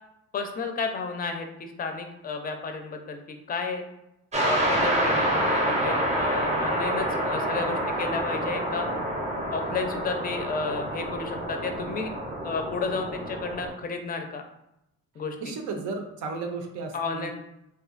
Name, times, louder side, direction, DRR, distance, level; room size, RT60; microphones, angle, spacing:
voice 1, 0.3-3.2 3.5-3.8 4.4-8.9 9.5-12.1 12.4-14.4 15.2-15.5 16.9-17.3, left 4 dB, 30° left, 5 dB, 0.4 m, -32 dB
sound 1, 4.3-13.7, right 1 dB, 25° right, 0.5 m, -27 dB
voice 2, 15.4-17.3, right 4 dB, 85° right, 4 dB, 0.5 m, -34 dB
2.7 x 2.2 x 2.4 m, 0.84 s
cardioid pair, 90°, 30 cm